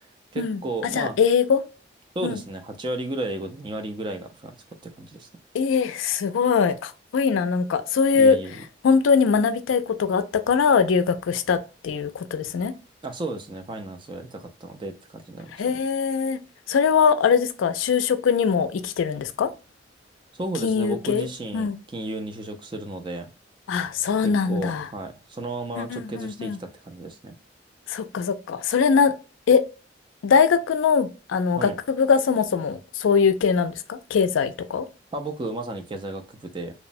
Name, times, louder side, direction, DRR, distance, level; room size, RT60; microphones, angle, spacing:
voice 1, 0.3-1.2 2.2-4.6 4.8-5.3 8.1-8.5 13.0-15.8 20.3-23.3 24.2-27.3 31.6-31.8 35.1-36.7, right 2 dB, 25° right, 0.3 m, -33 dB
voice 2, 0.9-1.6 2.2-2.4 5.5-8.4 8.8-12.7 15.6-16.4 16.7-19.5 20.6-21.3 21.5-21.8 23.7-24.9 25.8-26.6 27.9-29.1 29.5-29.6 30.2-34.9, left 6 dB, 85° left, 0.4 m, -22 dB
3.0 x 2.0 x 2.5 m
head